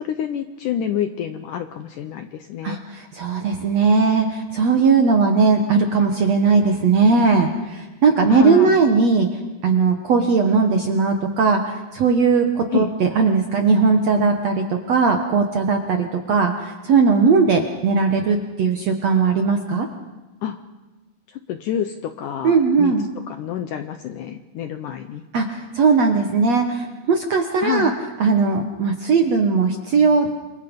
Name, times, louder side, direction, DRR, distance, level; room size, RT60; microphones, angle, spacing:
voice 1, 0.0-2.8 8.3-8.8 12.7-12.9 20.4-20.6 21.3-22.9 23.3-25.2 27.6-27.9, left 9 dB, 75° left, 8 dB, 1.9 m, -27 dB
voice 2, 2.6-9.3 9.6-19.9 22.4-23.0 25.3-27.9 28.2-30.3, right 4 dB, 60° right, 5 dB, 1.8 m, -18 dB
28.5 x 26.5 x 5.3 m, 1.2 s
omnidirectional pair, 4.7 m